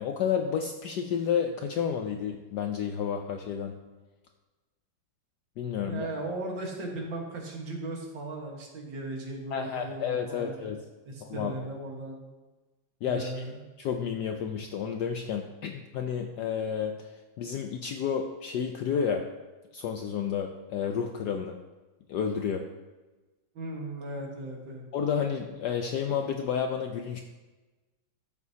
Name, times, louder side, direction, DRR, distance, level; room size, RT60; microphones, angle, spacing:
voice 1, 0.0-3.8 5.6-6.1 9.5-10.8 11.2-11.5 13.0-13.5 13.8-17.1 17.4-19.3 19.7-21.6 22.1-22.6 24.9-27.2, left 7 dB, 75° left, 4 dB, 1.0 m, -31 dB
voice 2, 5.8-10.6 11.1-12.2 13.0-13.6 23.6-24.9, right 2 dB, 60° right, 0 dB, 2.2 m, -37 dB
13.5 x 7.3 x 2.8 m, 1.2 s
omnidirectional pair, 2.3 m